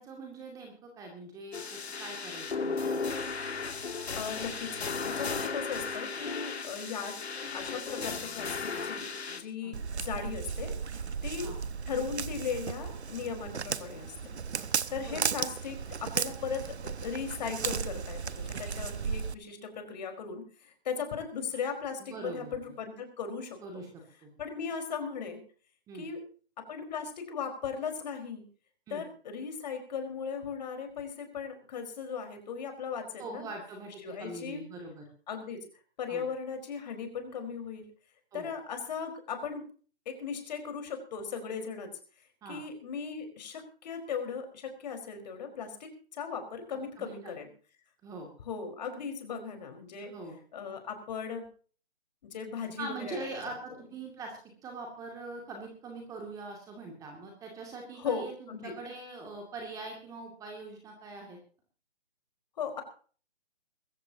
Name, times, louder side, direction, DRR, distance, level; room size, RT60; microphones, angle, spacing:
voice 1, 0.0-2.8 9.6-9.7 11.4-11.6 15.0-15.2 22.0-22.6 23.6-23.9 24.2-24.3 25.9-26.1 28.9-29.0 33.2-35.1 36.1-36.2 38.3-38.5 42.4-42.6 47.0-47.3 48.0-48.3 50.1-50.4 52.8-61.4, right 3 dB, 10° right, 2 dB, 2.4 m, -43 dB
sound 1, 1.5-9.4, left 4 dB, 70° left, 2.6 m, -35 dB
voice 2, 4.1-4.7 5.0-7.1 7.5-10.8 11.2-11.5 11.9-14.4 14.9-23.8 24.4-25.4 25.9-26.2 26.7-28.4 28.9-33.5 34.0-34.6 35.3-35.6 36.0-37.8 38.3-39.6 40.0-41.9 42.5-47.5 48.4-50.1 50.5-51.5 52.2-53.5 58.0-58.7 62.6-62.8, left 6 dB, 40° left, 5 dB, 4.7 m, -37 dB
Walk footsteps, 9.7-19.3, right 6 dB, 75° right, 1.1 m, -35 dB
23.0 x 14.5 x 2.9 m, 0.41 s
hypercardioid pair, 155°, 33 cm